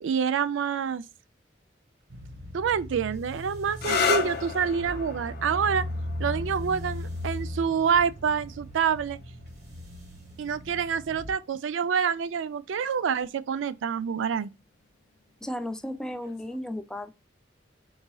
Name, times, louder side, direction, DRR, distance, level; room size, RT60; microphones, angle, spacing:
voice 1, 0.0-1.0 2.5-5.8 6.2-9.2 10.4-14.5, right 7 dB, 85° right, 0.4 m, -27 dB
sound 1, 2.1-11.3, left 1 dB, 60° right, 1.2 m, -38 dB
sound 2, 3.7-11.2 12.2-12.7 16.2-16.6, left 5 dB, 55° left, 0.5 m, -34 dB
voice 2, 15.4-17.1, left 1 dB, 5° left, 0.3 m, -34 dB
3.9 x 3.9 x 2.3 m
head